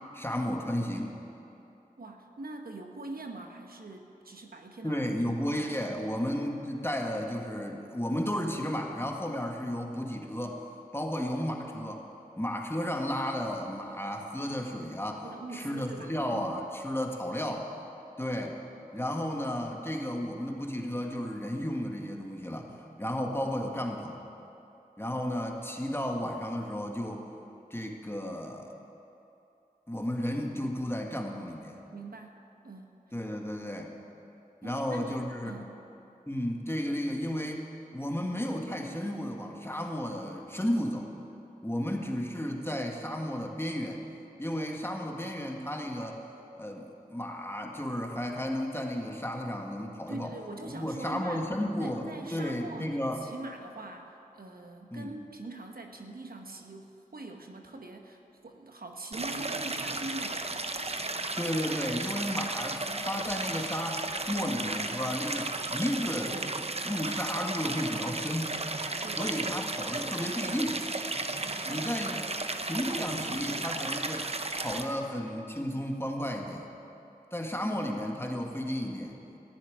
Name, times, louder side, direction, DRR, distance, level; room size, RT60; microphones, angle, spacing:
voice 1, 0.1-1.2 4.8-10.6 10.9-12.0 12.4-15.3 15.5-17.7 18.2-18.6 18.9-22.7 23.0-24.2 25.0-27.3 27.7-28.7 29.9-31.8 33.1-34.0 34.6-35.7 36.3-37.7 37.9-41.1 41.6-44.0 44.4-46.2 46.6-50.3 50.7-52.1 52.3-53.2 54.9-55.1 61.4-66.4 66.8-68.6 69.2-70.8 71.7-72.2 72.6-74.3 74.6-76.7 77.3-79.2, equal, 15° left, 1 dB, 1.7 m, -33 dB
voice 2, 2.0-5.3 15.2-16.6 31.9-33.0 34.6-35.8 50.1-51.5 51.8-60.7 69.0-69.3 71.5-71.9, right 2 dB, 80° right, 3 dB, 1.2 m, -43 dB
Stream, 59.1-74.8, right 2 dB, 45° right, 0.8 m, -34 dB
14.5 x 7.2 x 9.9 m, 2.8 s
wide cardioid pair, 45°, 15 cm